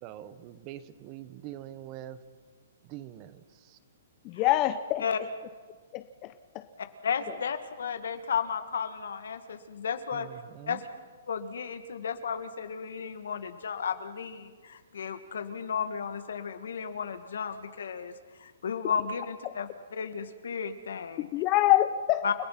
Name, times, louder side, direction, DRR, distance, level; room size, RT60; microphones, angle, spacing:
voice 1, 0.0-2.2 2.8-3.8 10.1-10.8, right 12 dB, 30° right, 14 dB, 0.9 m, -44 dB
voice 2, 4.2-5.0 5.9-6.3 21.2-22.2, left 15 dB, 25° left, 10 dB, 0.6 m, -25 dB
voice 3, 6.8-10.3 10.7-10.8 11.3-21.3 22.2-22.3, left 6 dB, 80° left, 10 dB, 1.8 m, -34 dB
30.0 x 16.5 x 5.9 m, 1.5 s
hypercardioid pair, 160°, 0 cm